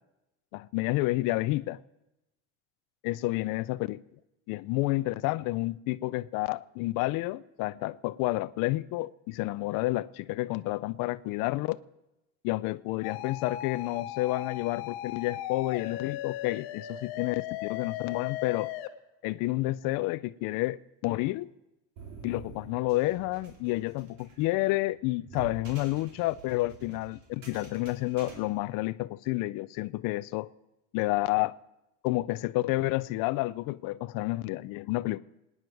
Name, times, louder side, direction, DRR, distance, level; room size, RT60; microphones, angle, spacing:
voice 1, 0.5-1.8 3.0-4.0 4.5-11.8 12.4-18.7 19.2-21.5 22.2-30.5 30.9-31.5 32.0-35.2, left 19 dB, 55° left, 0.5 m, -30 dB
sound 1, 13.0-18.9, left 13 dB, 75° left, 1.1 m, -37 dB
sound 2, 22.0-28.4, right 5 dB, 60° right, 3.5 m, -48 dB
26.0 x 9.5 x 4.7 m
cardioid pair, 150°, 39 cm